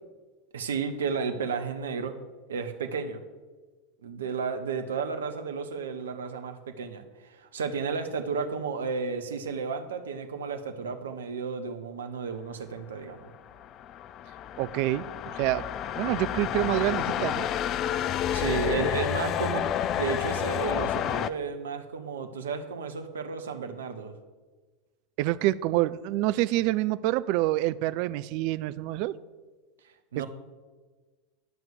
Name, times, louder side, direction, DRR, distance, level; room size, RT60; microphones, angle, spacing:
voice 1, 0.5-2.1 2.5-3.2 4.0-13.3 18.3-24.2 30.1-30.3, right 5 dB, 70° right, 7 dB, 1.0 m, -33 dB
sound 1, 13.3-21.3, left 10 dB, 35° left, 0.4 m, -30 dB
voice 2, 14.6-15.0 15.3-15.6 16.0-17.5 25.2-29.1 30.2-30.3, right 16 dB, 50° right, 15 dB, 0.4 m, -27 dB
11.0 x 6.1 x 6.9 m, 1.3 s
figure-of-eight pair, 80°, 0 cm